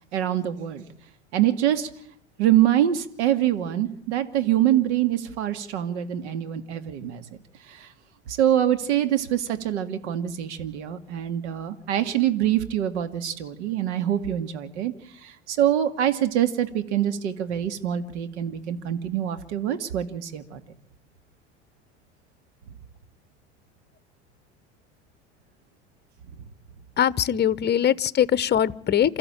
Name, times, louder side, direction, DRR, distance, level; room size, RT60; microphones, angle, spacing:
voice 1, 0.1-0.8 1.3-1.9 2.4-7.2 7.6-7.9 8.3-20.6, right 11 dB, 75° right, 9 dB, 2.1 m, -25 dB
voice 2, 27.0-29.2, left 10 dB, 30° left, 17 dB, 1.0 m, -22 dB
28.5 x 14.0 x 8.9 m, 0.70 s
hypercardioid pair, 80°, 34 cm